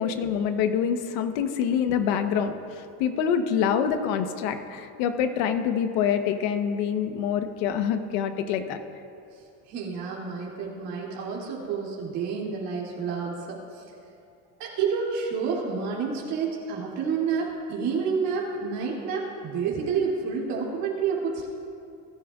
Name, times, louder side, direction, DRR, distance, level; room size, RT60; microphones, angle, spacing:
voice 1, 0.0-8.8, left 8 dB, 85° left, 7 dB, 1.1 m, -26 dB
voice 2, 9.7-13.6 14.6-21.5, right 5 dB, 60° right, -4 dB, 2.8 m, -29 dB
20.5 x 12.5 x 2.4 m, 2.5 s
cardioid pair, 170°, 41 cm